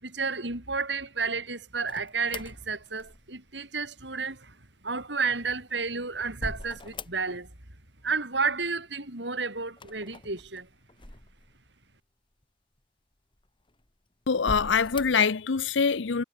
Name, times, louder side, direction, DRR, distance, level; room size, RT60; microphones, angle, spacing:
voice 1, 0.0-4.6 4.8-7.5 8.0-10.7, right 4 dB, 65° right, 5.7 m, -31 dB
Open and close window, 1.9-3.5 5.4-7.6 7.8-8.6 9.7-11.8 12.4-12.5 13.3-13.9 14.4-15.3, left 2 dB, 25° left, 2.1 m, -42 dB
voice 2, 14.3-16.2, left 5 dB, 75° left, 0.7 m, -24 dB
head